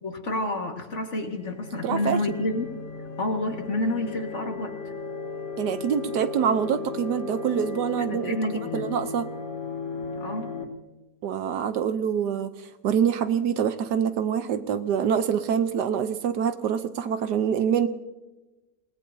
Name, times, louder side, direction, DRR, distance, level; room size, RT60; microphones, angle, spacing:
voice 1, 0.0-2.7 3.2-4.7 8.1-8.9 10.2-10.5, left 2 dB, 45° left, 3 dB, 1.9 m, -29 dB
sound 1, 1.1-10.6, left 4 dB, 85° left, 3.1 m, -36 dB
voice 2, 1.8-2.2 5.6-8.4 8.7-9.3 11.2-12.5 12.8-17.9, right 8 dB, 75° right, 11 dB, 1.3 m, -25 dB
28.5 x 18.5 x 2.7 m, 1.1 s
omnidirectional pair, 1.9 m